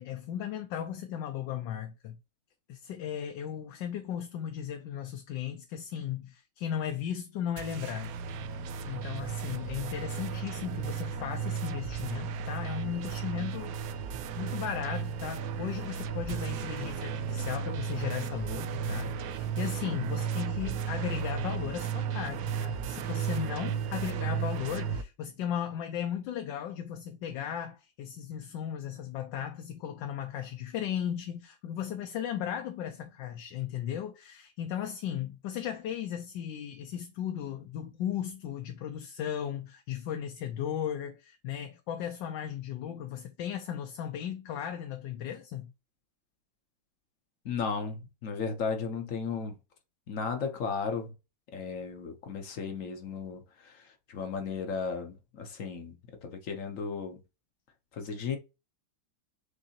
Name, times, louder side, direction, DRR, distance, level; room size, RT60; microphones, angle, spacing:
voice 1, 0.0-2.2 2.7-8.2 8.9-14.1 14.4-45.7, left 9 dB, 75° left, 1.2 m, -36 dB
sound 1, 7.6-25.0, right 6 dB, 80° right, 0.8 m, -34 dB
voice 2, 47.4-49.6 50.1-51.1 51.5-56.0 56.2-57.2 57.9-58.4, left 5 dB, 55° left, 0.9 m, -35 dB
6.4 x 2.7 x 2.8 m
omnidirectional pair, 2.1 m